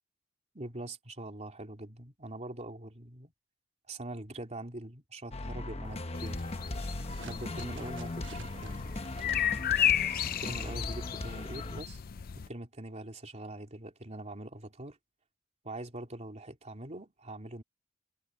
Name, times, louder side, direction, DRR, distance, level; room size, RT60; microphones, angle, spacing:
voice 1, 0.5-3.3 3.9-6.4 7.2-8.8 10.4-12.0 12.5-15.0 15.6-17.6, right 1 dB, 35° right, 3.3 m, -43 dB
sound 1, 5.3-11.8, left 2 dB, 30° left, 1.0 m, -39 dB
sound 2, 5.8-11.1, right 5 dB, 65° right, 1.3 m, -52 dB
sound 3, 6.1-12.5, left 10 dB, 45° left, 0.5 m, -33 dB
head